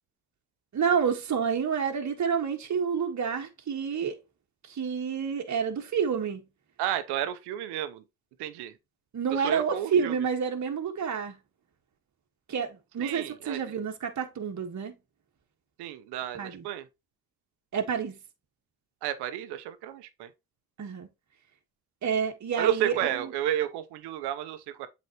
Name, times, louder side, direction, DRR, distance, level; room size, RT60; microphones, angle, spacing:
voice 1, 0.7-4.2 4.7-6.4 9.1-11.4 12.5-14.9 16.3-16.6 17.7-18.2 20.8-21.1 22.0-22.9, right 7 dB, 45° right, 1.6 m, -29 dB
voice 2, 6.8-8.0 8.4-8.8 9.3-10.3 13.0-13.7 15.8-16.9 19.0-20.3 22.6-24.9, right 11 dB, 90° right, 0.9 m, -32 dB
7.8 x 4.1 x 3.0 m
supercardioid pair, 70°, 38 cm